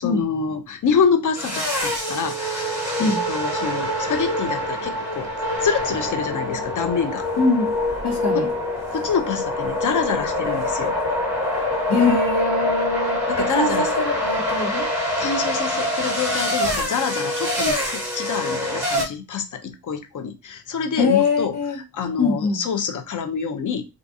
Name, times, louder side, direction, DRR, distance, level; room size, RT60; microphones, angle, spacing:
voice 1, 0.0-5.3 5.6-7.3 8.3-8.5 8.9-10.9 13.3-13.9 15.2-21.5 21.9-23.8, left 6 dB, 50° left, 0.6 m, -26 dB
sound 1, 1.3-19.0, left 1 dB, 5° right, 1.1 m, -25 dB
voice 2, 7.4-7.7 8.0-8.5 11.9-14.9 21.0-21.8 22.2-22.6, left 3 dB, 85° left, 1.2 m, -22 dB
3.6 x 2.4 x 2.6 m
wide cardioid pair, 160°, 39 cm